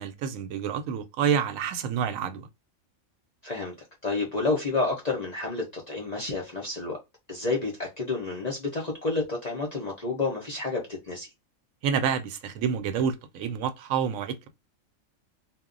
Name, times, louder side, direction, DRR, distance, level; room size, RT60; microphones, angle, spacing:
voice 1, 0.0-2.5 11.8-14.5, right 7 dB, 80° right, 1.0 m, -28 dB
voice 2, 3.4-7.0 7.3-11.3, left 3 dB, 45° left, 0.6 m, -30 dB
2.2 x 2.0 x 3.7 m
omnidirectional pair, 1.4 m